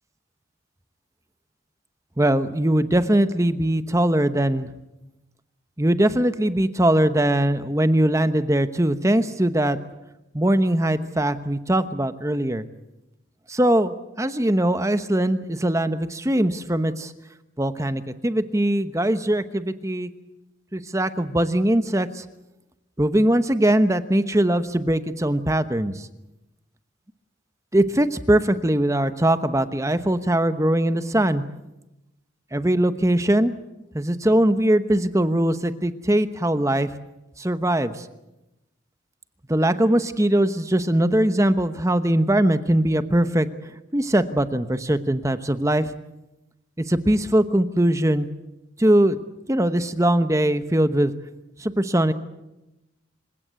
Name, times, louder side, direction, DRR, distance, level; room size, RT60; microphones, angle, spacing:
voice 1, 2.2-4.7 5.8-9.8 10.3-12.6 13.5-17.1 17.6-20.1 20.7-22.2 23.0-26.1 27.7-31.4 32.5-33.5 33.9-36.9 37.4-38.1 39.5-45.9 46.8-48.3 48.8-49.2 49.5-51.1 51.6-52.1, right 1 dB, 15° right, 11 dB, 1.0 m, -21 dB
26.5 x 17.0 x 8.2 m, 0.95 s
head